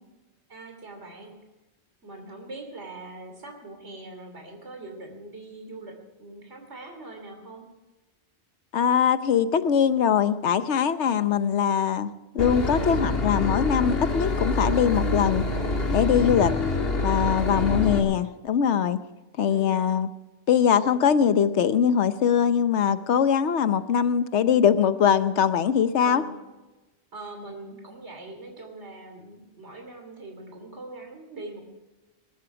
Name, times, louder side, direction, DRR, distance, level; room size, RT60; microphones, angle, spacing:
voice 1, 0.5-1.3 2.0-7.7 16.2-16.7 17.4-18.0 19.5-19.9 26.0-26.5 27.1-31.6, right 2 dB, 80° right, 4 dB, 3.2 m, -42 dB
voice 2, 8.7-15.4 15.9-16.5 17.0-19.0 19.4-20.1 20.5-26.2, left 8 dB, 85° left, 12 dB, 1.1 m, -22 dB
Boat Water vehicle / Engine, 12.4-18.0, left 2 dB, 60° left, 1.9 m, -26 dB
20.5 x 13.0 x 4.8 m, 1.1 s
omnidirectional pair, 1.1 m